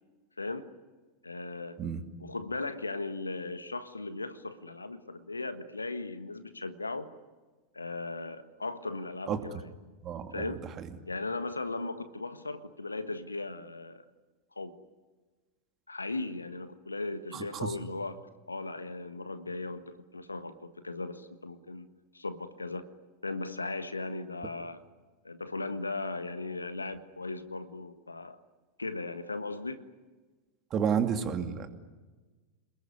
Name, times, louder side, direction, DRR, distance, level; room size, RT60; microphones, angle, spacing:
voice 1, 0.4-0.7 1.2-1.8 2.2-7.1 7.7-9.6 10.3-10.6 11.1-14.0 14.5-14.8 15.9-18.2 18.5-21.9 22.1-22.9 23.2-24.8 25.2-28.4 28.8-29.8, left 3 dB, 80° left, 12 dB, 1.5 m, -37 dB
voice 2, 9.3-9.6 10.0-10.9 17.3-17.7 30.7-31.7, right 7 dB, 30° right, 7 dB, 2.5 m, -31 dB
28.5 x 21.0 x 9.6 m, 1.3 s
figure-of-eight pair, 90°, 0 cm